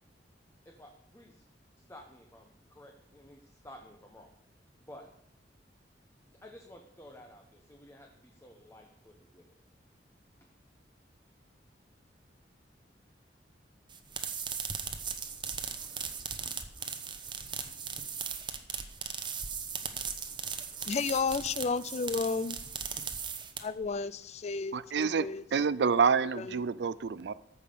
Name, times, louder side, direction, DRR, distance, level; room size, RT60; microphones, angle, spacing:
voice 1, 0.6-1.4 1.8-4.3 4.8-5.1 6.2-9.5, left 1 dB, 15° left, 3 dB, 0.9 m, -53 dB
sound 1, 13.9-23.9, right 6 dB, 25° right, 1.0 m, -38 dB
voice 2, 20.9-22.6 23.6-25.4 26.4-26.5, left 4 dB, 35° left, 17 dB, 0.4 m, -32 dB
voice 3, 24.7-27.3, right 5 dB, 65° right, 17 dB, 0.4 m, -28 dB
14.0 x 5.6 x 6.8 m, 0.78 s
head